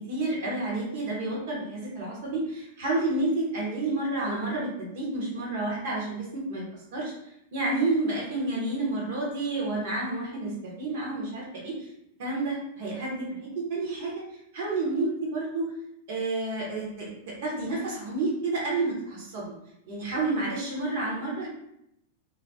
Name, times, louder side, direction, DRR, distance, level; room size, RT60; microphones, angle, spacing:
voice 1, 0.1-6.6 6.9-7.1 7.5-10.5 10.8-11.9 12.2-14.2 14.5-15.7 16.1-19.4 19.9-21.5, right 2 dB, 55° right, -4 dB, 0.9 m, -30 dB
2.3 x 2.1 x 2.8 m, 0.77 s
figure-of-eight pair, 95°, 0 cm